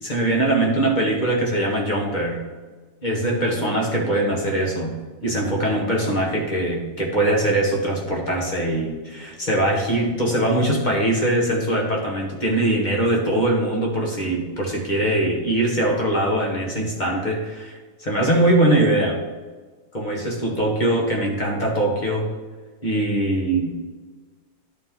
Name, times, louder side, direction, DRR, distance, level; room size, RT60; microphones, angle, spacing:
voice 1, 0.0-2.4 3.0-19.2 19.9-22.3 22.8-23.9, right 1 dB, 25° left, -2 dB, 1.5 m, -22 dB
12.0 x 4.5 x 3.8 m, 1.4 s
omnidirectional pair, 2.2 m